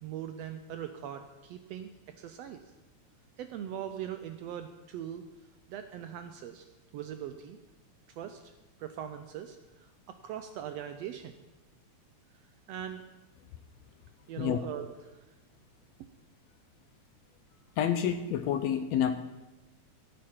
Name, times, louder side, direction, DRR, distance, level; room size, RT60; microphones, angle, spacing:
voice 1, 0.0-1.9 2.2-2.6 3.4-5.2 5.7-7.6 8.1-8.5 8.8-11.4 12.7-13.0 14.3-15.2, right 10 dB, 80° right, 8 dB, 1.5 m, -41 dB
voice 2, 17.8-19.2, left 9 dB, 80° left, 9 dB, 1.7 m, -28 dB
16.0 x 8.8 x 4.4 m, 1.1 s
omnidirectional pair, 3.4 m